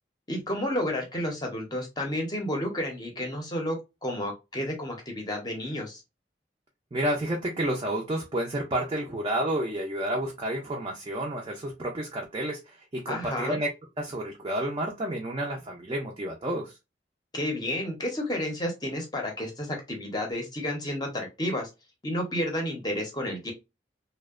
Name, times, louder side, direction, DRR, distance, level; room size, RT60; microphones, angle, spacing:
voice 1, 0.3-6.0 13.1-13.6 17.3-21.7 22.0-23.5, left 1 dB, 20° left, 0.6 m, -31 dB
voice 2, 6.9-13.7 14.0-16.7, right 1 dB, 25° right, 0.4 m, -30 dB
2.7 x 2.1 x 2.3 m
head